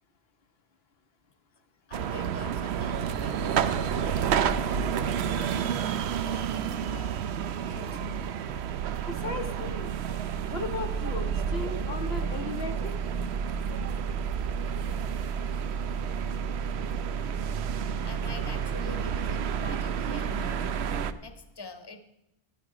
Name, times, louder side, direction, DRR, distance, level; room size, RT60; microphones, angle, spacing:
voice 1, 1.9-8.1 18.0-20.8 21.2-22.0, left 3 dB, 25° left, 8 dB, 1.1 m, -45 dB
sound 1, 1.9-21.1, right 7 dB, 80° right, 0.9 m, -30 dB
voice 2, 9.1-9.9 10.5-12.9, left 3 dB, 70° left, 5 dB, 1.1 m, -36 dB
12.5 x 9.6 x 4.8 m, 0.85 s
omnidirectional pair, 1.1 m